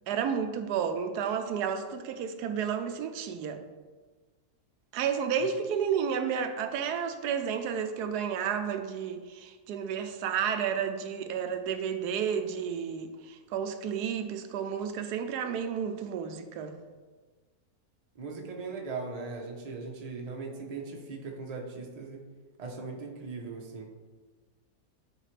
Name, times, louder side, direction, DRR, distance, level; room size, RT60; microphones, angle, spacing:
voice 1, 0.1-3.6 4.9-16.8, right 7 dB, 85° right, 8 dB, 1.1 m, -31 dB
voice 2, 18.2-22.2 22.6-23.9, right 4 dB, 30° right, 0 dB, 0.7 m, -39 dB
8.8 x 4.1 x 3.2 m, 1.4 s
omnidirectional pair, 1.7 m